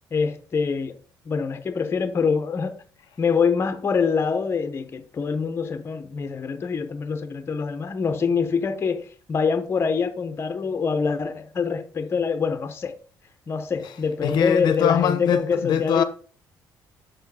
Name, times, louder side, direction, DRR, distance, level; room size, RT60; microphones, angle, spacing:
voice 1, 0.1-1.0 1.3-2.8 3.2-13.0 13.5-16.0, left 5 dB, 30° left, 0.7 m, -25 dB
voice 2, 14.2-16.0, left 8 dB, 65° left, 0.7 m, -23 dB
6.2 x 4.6 x 4.7 m
cardioid pair, 110°, 8 cm